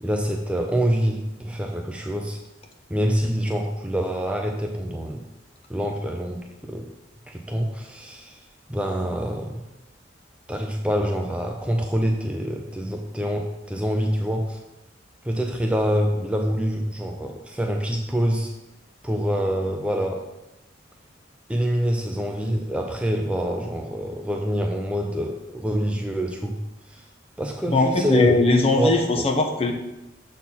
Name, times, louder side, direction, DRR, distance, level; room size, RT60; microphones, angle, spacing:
voice 1, 0.0-2.4 2.9-5.3 5.7-6.9 7.3-8.4 8.7-9.7 10.5-14.6 15.2-18.5 19.0-20.3 21.5-26.6 26.9-27.1 27.4-28.4 28.8-29.3, equal, 5° right, 2 dB, 0.5 m, -26 dB
voice 2, 27.7-29.7, left 2 dB, 35° left, 4 dB, 0.9 m, -20 dB
7.1 x 4.1 x 5.9 m, 0.96 s
head